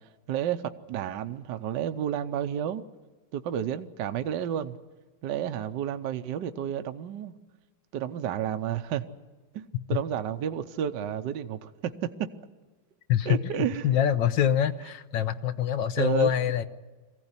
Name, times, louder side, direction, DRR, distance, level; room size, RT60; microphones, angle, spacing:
voice 1, 0.3-2.8 3.3-4.8 5.2-7.3 7.9-9.1 9.5-12.3 13.3-13.9 16.0-16.3, right 9 dB, 65° right, 8 dB, 1.4 m, -31 dB
voice 2, 13.1-13.4 13.8-16.6, left 9 dB, 65° left, 11 dB, 1.5 m, -25 dB
23.0 x 16.0 x 9.7 m, 1.3 s
omnidirectional pair, 2.3 m